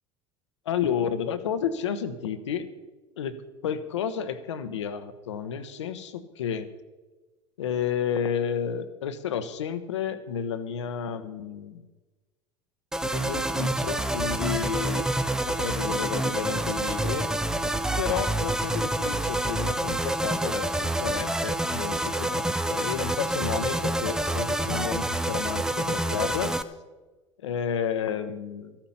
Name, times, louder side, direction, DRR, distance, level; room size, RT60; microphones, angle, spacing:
voice 1, 0.6-2.7 3.2-3.3 3.6-6.7 7.6-11.9 13.0-15.1 15.5-17.3 18.0-26.5 27.4-28.8, left 8 dB, 75° left, 11 dB, 0.9 m, -31 dB
sound 1, 12.9-26.6, right 1 dB, 5° right, 0.6 m, -27 dB
14.0 x 8.9 x 5.6 m, 1.2 s
hypercardioid pair, 75°, 15 cm